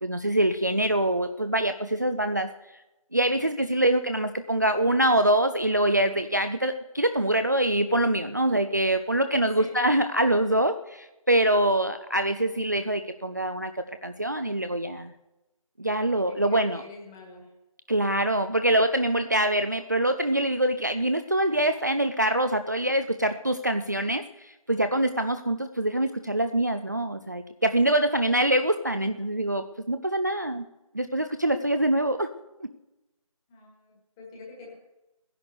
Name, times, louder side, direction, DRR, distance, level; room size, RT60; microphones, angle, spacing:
voice 1, 0.0-2.5 3.1-15.1 15.8-16.8 17.9-30.7 30.9-32.3 32.6-32.7, right 1 dB, 30° right, 8 dB, 0.4 m, -24 dB
voice 2, 9.3-9.8 16.3-17.5 33.5-34.7, left 2 dB, 5° left, -2 dB, 1.6 m, -45 dB
15.0 x 10.5 x 6.6 m, 1.0 s
figure-of-eight pair, 165°, 18 cm